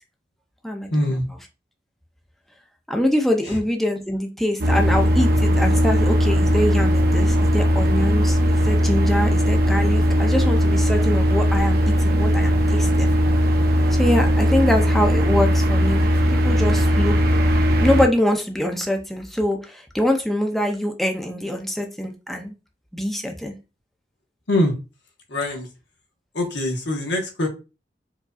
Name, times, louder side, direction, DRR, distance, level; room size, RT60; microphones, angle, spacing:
voice 1, 0.9-1.3 3.4-3.6 24.5-24.7 25.3-25.7 26.3-27.5, left 1 dB, 85° left, 1.1 m, -23 dB
voice 2, 2.9-13.1 13.9-17.2 17.8-22.5 22.9-23.5, left 1 dB, ahead, 0.5 m, -24 dB
sound 1, 4.6-18.1, equal, 60° right, 0.7 m, -18 dB
4.7 x 2.6 x 2.3 m
head